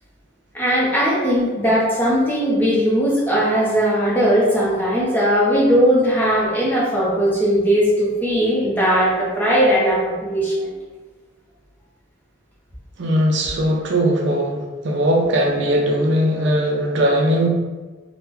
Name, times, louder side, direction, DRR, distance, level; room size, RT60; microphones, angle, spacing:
voice 1, 0.5-10.7, equal, 10° left, -7 dB, 0.7 m, -18 dB
voice 2, 13.0-17.5, equal, 60° right, 0 dB, 0.4 m, -19 dB
3.5 x 2.2 x 3.0 m, 1.3 s
head